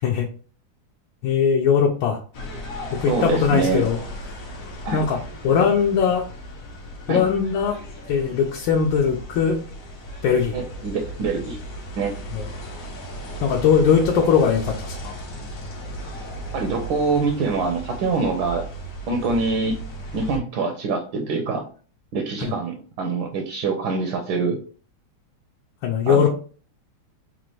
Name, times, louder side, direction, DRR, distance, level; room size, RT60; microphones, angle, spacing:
voice 1, 1.2-2.2 2.9-4.0 4.9-5.2 5.4-6.3 7.1-7.8 8.1-9.6 10.2-10.6 12.3-12.4 13.4-15.1 22.4-22.5 25.8-26.3, left 6 dB, 75° left, 1 dB, 1.3 m, -20 dB
sound 1, 2.3-20.4, right 1 dB, 55° left, 1.0 m, -36 dB
voice 2, 3.1-3.8 4.8-5.0 7.1-7.2 10.5-11.6 12.0-12.2 16.5-18.7 19.1-19.8 20.1-21.6 22.1-24.6 26.0-26.3, right 4 dB, 75° right, 2 dB, 1.4 m, -24 dB
4.2 x 2.5 x 3.1 m, 0.39 s
omnidirectional pair, 2.2 m